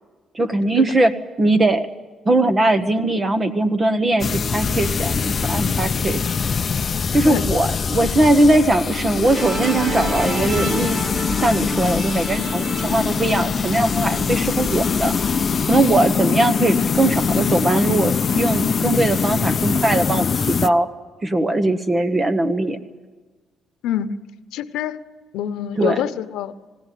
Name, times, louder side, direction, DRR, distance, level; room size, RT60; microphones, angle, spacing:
voice 1, 0.3-1.9 2.2-6.2 7.1-11.0 11.3-15.1 15.7-20.9 21.2-22.8 25.8-26.0, right 2 dB, 30° right, 1.2 m, -20 dB
sound 1, 4.2-20.7, left 6 dB, 45° left, 0.6 m, -23 dB
Musical instrument, 9.3-15.8, right 3 dB, 60° right, 2.6 m, -30 dB
voice 2, 23.8-24.2 24.5-25.0 25.3-26.5, left 10 dB, 90° left, 0.9 m, -25 dB
21.0 x 16.5 x 9.2 m
cardioid pair, 90°, 0 cm